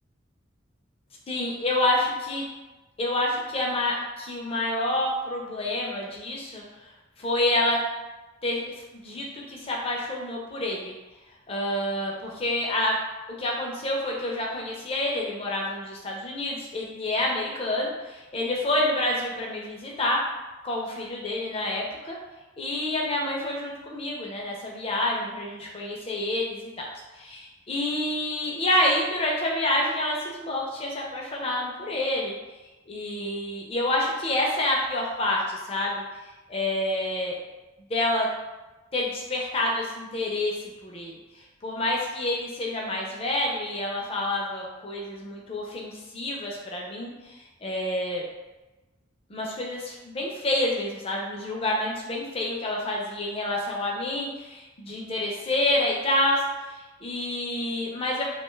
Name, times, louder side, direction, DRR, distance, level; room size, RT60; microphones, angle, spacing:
voice 1, 1.3-2.4 3.0-6.9 7.2-7.8 8.4-8.6 8.9-10.9 11.5-13.0 13.3-20.2 20.6-22.2 22.6-26.7 27.1-32.3 32.9-37.4 37.9-38.3 38.9-40.6 40.8-41.1 41.4-48.2 49.3-58.2, left 1 dB, 30° left, -2 dB, 0.5 m, -28 dB
2.4 x 2.3 x 3.1 m, 1.1 s
head